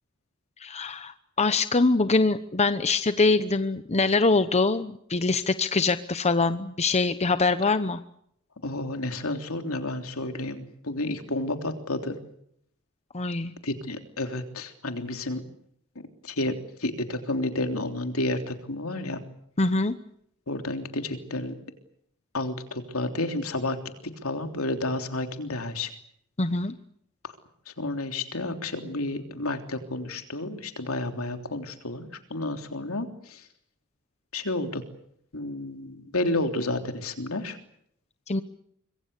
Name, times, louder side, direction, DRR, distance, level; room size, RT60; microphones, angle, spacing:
voice 1, 0.6-8.0 13.1-13.5 19.6-20.0 26.4-26.7 38.3-38.4, left 3 dB, 30° left, 11 dB, 0.9 m, -24 dB
voice 2, 8.6-12.1 13.6-15.4 16.2-16.5 16.8-19.2 20.5-21.5 22.3-23.8 24.2-25.9 27.7-33.4 34.3-34.8 35.3-37.6, left 2 dB, 70° left, 5 dB, 3.4 m, -31 dB
26.0 x 22.0 x 8.3 m, 0.71 s
head